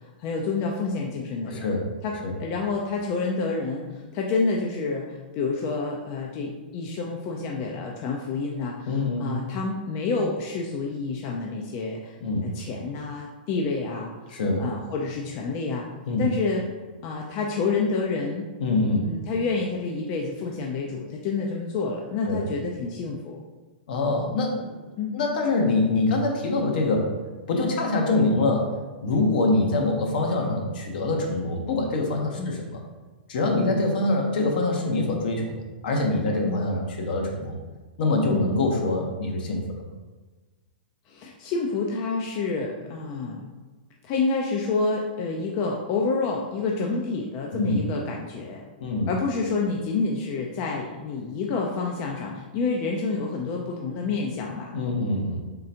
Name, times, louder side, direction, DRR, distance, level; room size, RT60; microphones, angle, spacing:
voice 1, 0.2-1.7 2.0-12.1 12.4-15.9 16.2-16.6 17.0-18.5 19.0-23.4 25.0-25.2 32.4-32.6 33.5-33.8 36.4-36.7 38.3-38.6 41.1-43.4 44.0-48.6 49.1-54.7, left 4 dB, 35° left, 0 dB, 0.4 m, -28 dB
voice 2, 1.5-1.8 2.2-2.3 8.9-9.3 12.2-12.5 14.3-14.6 16.1-16.2 18.6-19.0 22.3-22.5 23.9-24.7 25.1-27.1 27.5-28.7 29.0-32.8 33.3-37.6 38.0-39.6 47.5-47.9 48.8-49.1 54.7-55.4, left 2 dB, 65° left, 1 dB, 0.8 m, -24 dB
3.7 x 3.2 x 2.8 m, 1.3 s
hypercardioid pair, 140°, 5 cm